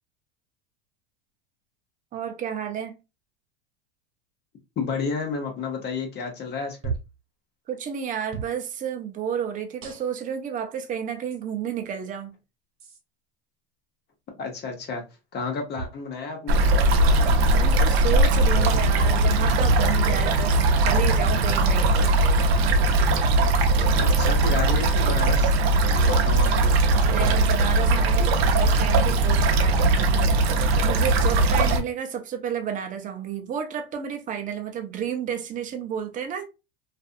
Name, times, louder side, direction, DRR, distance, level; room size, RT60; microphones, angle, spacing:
voice 1, 2.1-2.9 7.7-12.3 17.5-22.1 27.0-36.4, right 8 dB, 25° right, 0.6 m, -31 dB
voice 2, 4.8-6.9 14.4-15.0 15.3-16.6 23.9-25.5 25.9-26.7, left 4 dB, 30° left, 0.9 m, -31 dB
sound 1, 6.8-7.2 8.3-8.6 9.8-10.3 11.3-11.4 12.8-13.0 15.7-16.0 17.2-17.5 18.7-19.1 20.2-20.3 21.7-21.9, right 5 dB, 45° right, 0.9 m, -36 dB
sound 2, 16.5-31.8, right 2 dB, 70° right, 0.7 m, -20 dB
2.5 x 2.5 x 2.4 m
supercardioid pair, 115°, 31 cm